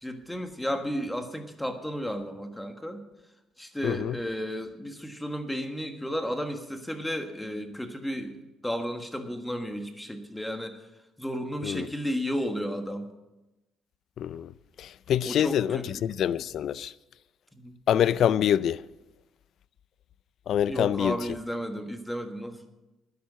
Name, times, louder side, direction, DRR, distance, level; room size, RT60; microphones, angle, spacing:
voice 1, 0.0-3.0 3.6-10.8 11.2-13.1 15.2-16.0 17.5-17.8 20.7-22.7, equal, 5° left, 1.4 m, -33 dB
voice 2, 3.8-4.2 11.6-11.9 14.2-14.5 14.8-16.9 17.9-18.8 20.5-21.2, left 10 dB, 60° left, 0.4 m, -25 dB
12.0 x 10.5 x 7.4 m
cardioid pair, 130°, 0 cm